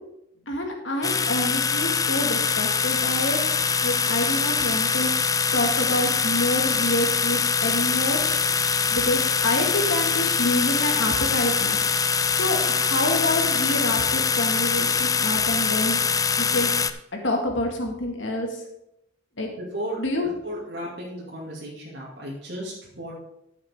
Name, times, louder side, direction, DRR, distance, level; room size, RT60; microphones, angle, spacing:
voice 1, 0.5-3.4 3.8-8.2 8.9-12.1 12.3-16.0 16.4-16.7 17.2-18.6 19.4-19.5 20.0-20.3, left 1 dB, 75° left, 2 dB, 2.1 m, -27 dB
sound 1, 1.0-16.9, left 6 dB, 20° left, 0.4 m, -23 dB
voice 2, 19.6-20.0 20.4-23.1, equal, 65° right, -6 dB, 2.6 m, -34 dB
12.5 x 7.4 x 3.7 m, 0.81 s
head